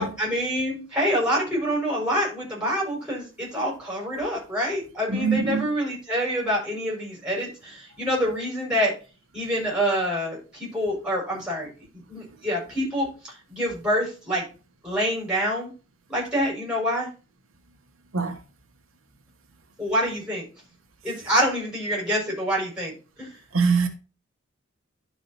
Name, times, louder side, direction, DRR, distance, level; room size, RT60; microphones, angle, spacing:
voice 1, 0.0-8.9 9.3-11.7 12.1-14.4 14.8-15.7 16.1-17.1 19.8-20.4 21.0-22.9 23.2-23.3, equal, 5° right, 4.8 m, -26 dB
voice 2, 5.1-5.7 18.1-18.4 23.5-23.9, right 5 dB, 85° right, 1.2 m, -23 dB
11.0 x 4.9 x 4.1 m
head